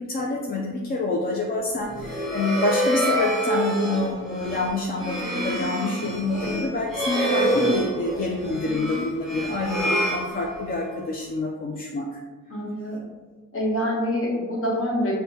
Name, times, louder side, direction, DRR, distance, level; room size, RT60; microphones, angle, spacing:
voice 1, 0.0-12.1, left 2 dB, 30° left, -1 dB, 0.4 m, -27 dB
sound 1, 1.9-10.9, right 1 dB, ahead, 0.8 m, -27 dB
voice 2, 12.5-13.1 13.5-15.1, equal, 50° left, -3 dB, 1.0 m, -26 dB
6.2 x 2.2 x 2.8 m, 1.3 s
wide cardioid pair, 175°, 29 cm